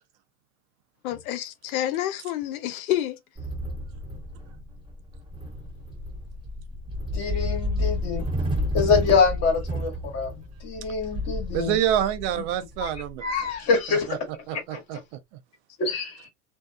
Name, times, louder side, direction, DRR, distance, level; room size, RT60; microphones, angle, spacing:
voice 1, 1.0-3.2, left 12 dB, 75° left, 0.7 m, -28 dB
sound 1, 3.4-13.6, left 1 dB, 10° right, 1.1 m, -31 dB
voice 2, 7.1-8.2 8.7-10.3 10.6-11.8 12.8-12.9 13.2-14.2 14.5-14.8 15.8-16.3, left 5 dB, 35° left, 1.4 m, -25 dB
voice 3, 11.5-13.2 13.9-14.2 14.5-15.0, right 11 dB, 50° right, 0.6 m, -27 dB
2.6 x 2.3 x 2.2 m
supercardioid pair, 125°, 42 cm